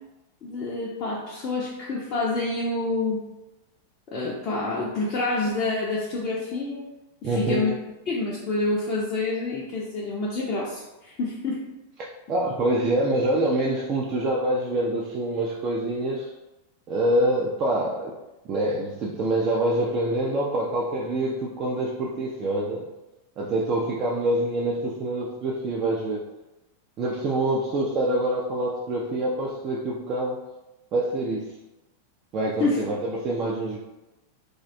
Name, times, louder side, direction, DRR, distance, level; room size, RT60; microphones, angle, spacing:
voice 1, 0.4-3.2 4.1-6.8 7.2-7.7 8.1-11.7 32.6-32.8, left 3 dB, 35° left, -5 dB, 0.4 m, -27 dB
voice 2, 7.2-7.6 12.3-16.3 16.9-18.1 18.5-22.9 23.4-26.3 27.0-30.4 30.9-31.4 32.3-33.8, right 1 dB, 35° right, -4 dB, 0.3 m, -25 dB
2.3 x 2.1 x 2.6 m, 1.0 s
figure-of-eight pair, 90°, 0 cm